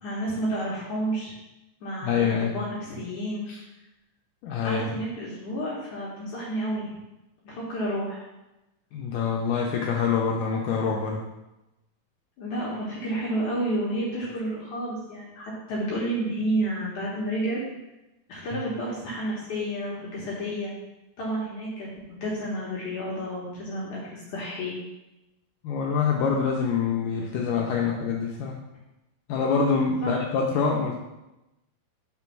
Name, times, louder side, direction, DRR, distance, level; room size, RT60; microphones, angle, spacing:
voice 1, 0.0-1.3 1.8-3.4 4.6-7.0 7.4-8.2 12.4-17.6 18.3-20.7 21.2-24.7 30.0-30.2, right 1 dB, 65° left, -6 dB, 2.3 m, -30 dB
voice 2, 2.0-2.5 3.5-3.6 4.4-4.8 8.9-11.3 18.5-18.6 25.6-28.6 29.3-31.0, left 5 dB, 90° left, 0 dB, 1.9 m, -25 dB
6.0 x 3.8 x 5.8 m, 0.97 s
omnidirectional pair, 4.4 m